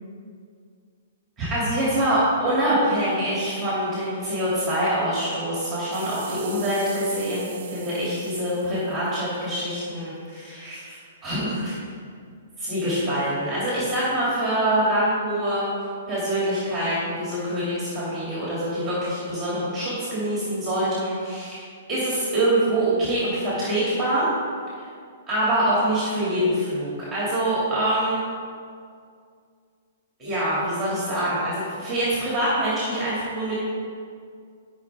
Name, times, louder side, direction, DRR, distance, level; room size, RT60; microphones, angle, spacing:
voice 1, 1.4-11.7 12.6-15.7 16.1-24.3 24.8-24.9 25.3-28.2 30.2-33.5, right 1 dB, 10° right, -8 dB, 2.4 m, -25 dB
sound 1, 5.9-9.6 10.2-10.3, right 8 dB, 45° right, 0.9 m, -41 dB
12.5 x 5.8 x 3.5 m, 2.2 s
hypercardioid pair, 160°, 0 cm